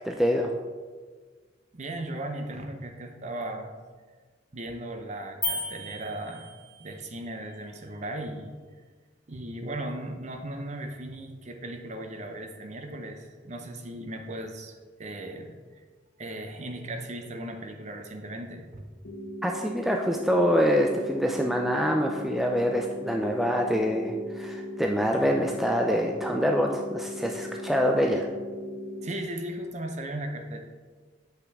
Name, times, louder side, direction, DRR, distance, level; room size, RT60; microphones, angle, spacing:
voice 1, 0.0-0.5 19.4-28.3, equal, ahead, 1 dB, 0.3 m, -25 dB
voice 2, 1.7-3.7 4.5-6.5 6.8-8.5 9.3-15.8 16.2-18.9 29.0-30.6, right 1 dB, 35° right, 5 dB, 0.7 m, -37 dB
sound 1, 5.4-7.0, left 2 dB, 15° left, 1.0 m, -34 dB
sound 2, 19.0-29.1, left 1 dB, 70° left, 1.1 m, -38 dB
7.9 x 5.7 x 3.5 m, 1.4 s
head